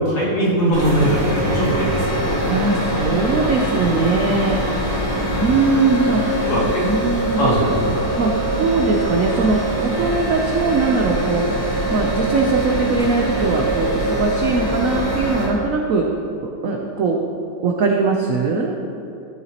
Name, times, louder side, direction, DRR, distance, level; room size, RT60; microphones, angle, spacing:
voice 1, 0.0-2.5 5.1-5.4 6.4-6.8 7.4-7.9, right 1 dB, 55° left, -8 dB, 2.9 m, -20 dB
sound 1, 0.7-15.5, right 1 dB, 25° right, 2.4 m, -23 dB
voice 2, 2.5-4.6 5.4-6.4 6.8-7.5 8.0-8.3 8.6-11.4 11.9-16.0 16.4-17.2 17.6-18.7, right 4 dB, 70° right, 1 dB, 0.8 m, -20 dB
13.5 x 6.8 x 2.9 m, 2.6 s
omnidirectional pair, 2.1 m